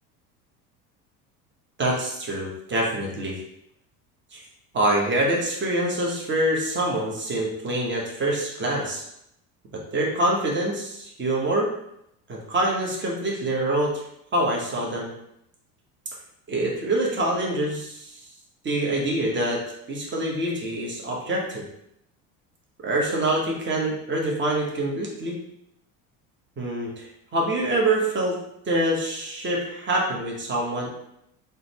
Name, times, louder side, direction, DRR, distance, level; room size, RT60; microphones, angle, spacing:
voice 1, 1.8-3.4 4.3-4.4 4.7-9.0 9.7-11.7 12.3-13.9 14.3-15.1 16.5-18.2 18.6-19.6 19.9-21.6 22.8-25.4 26.6-28.4 28.6-30.9, right 1 dB, 25° right, -2 dB, 1.0 m, -25 dB
3.7 x 2.2 x 2.9 m, 0.78 s
hypercardioid pair, 75°, 45 cm